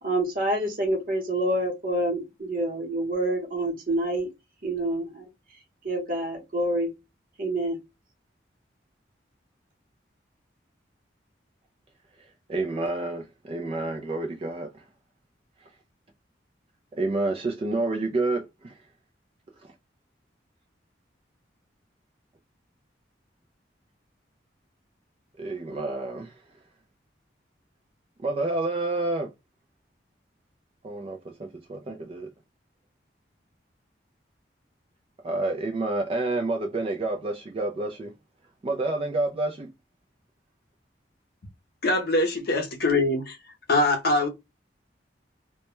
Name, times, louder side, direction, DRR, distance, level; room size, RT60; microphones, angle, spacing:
voice 1, 0.0-4.3 4.6-5.3 5.8-6.9 7.4-7.8, right 1 dB, 50° right, 0.9 m, -27 dB
voice 2, 12.5-14.8 16.9-18.8 25.4-26.3 28.2-29.3 30.8-32.3 35.2-38.1 38.6-39.7, right 2 dB, 30° right, 0.3 m, -29 dB
voice 3, 41.8-43.4 43.7-44.3, left 2 dB, 55° left, 0.6 m, -23 dB
2.2 x 2.1 x 2.9 m
head